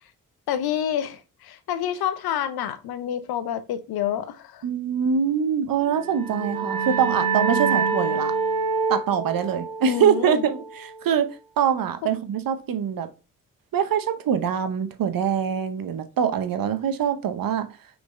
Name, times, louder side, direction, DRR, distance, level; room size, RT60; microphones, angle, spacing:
voice 1, 0.5-4.6 9.9-10.4, left 10 dB, 65° left, 0.7 m, -28 dB
voice 2, 4.6-8.3 8.9-11.3 11.6-13.1 13.7-17.7, right 8 dB, 60° right, 0.8 m, -24 dB
sound 1, 5.9-11.3, right 5 dB, 85° right, 0.5 m, -27 dB
5.9 x 4.0 x 2.2 m
hypercardioid pair, 40°, 39 cm